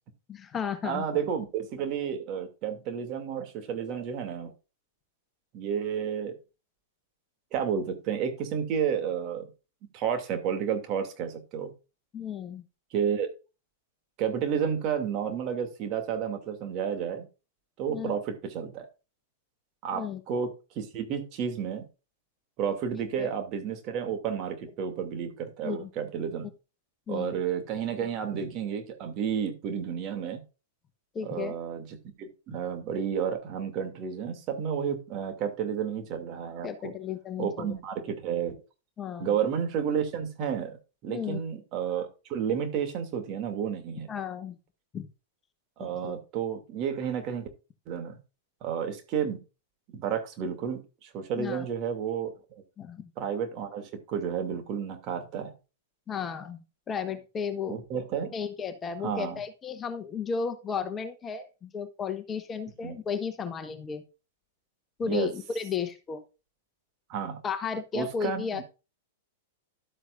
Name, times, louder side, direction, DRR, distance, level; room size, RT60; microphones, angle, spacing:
voice 1, 0.3-1.0 12.1-12.6 17.9-18.2 19.9-20.2 23.2-23.3 25.6-25.9 27.1-27.3 31.1-31.6 36.6-37.7 39.0-39.3 41.1-41.4 44.1-44.5 44.9-45.1 46.0-46.1 51.4-51.6 52.8-53.1 56.1-57.8 58.3-64.0 65.0-66.2 67.4-68.7, left 6 dB, 25° left, 9 dB, 1.2 m, -34 dB
voice 2, 0.8-4.5 5.5-6.4 7.5-9.5 9.9-11.7 12.9-13.3 14.2-17.3 17.8-18.9 19.8-21.8 22.6-26.5 27.1-30.4 31.2-31.9 32.2-36.9 37.4-38.6 39.2-40.8 41.0-44.1 45.8-47.5 47.9-48.2 48.6-49.4 49.9-52.3 53.2-55.5 57.7-58.3 59.0-59.4 62.8-63.0 65.1-65.3 67.1-67.4 67.9-68.6, right 7 dB, 40° right, 6 dB, 2.5 m, -31 dB
12.0 x 7.9 x 2.5 m, 0.30 s
hypercardioid pair, 100°, 0 cm